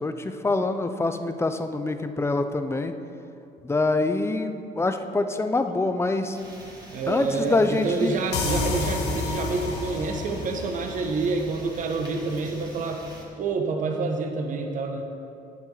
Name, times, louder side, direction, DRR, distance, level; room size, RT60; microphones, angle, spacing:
voice 1, 0.0-2.9 3.6-6.4 7.1-8.2, left 2 dB, 15° left, 8 dB, 0.7 m, -25 dB
sound 1, 6.3-13.2, right 1 dB, 20° right, 2.4 m, -45 dB
voice 2, 6.9-13.0 13.4-15.0, right 3 dB, 50° right, 4 dB, 1.3 m, -28 dB
sound 2, 8.3-11.8, left 3 dB, 80° left, 1.6 m, -30 dB
18.0 x 7.1 x 4.0 m, 2.6 s
cardioid pair, 110°, 17 cm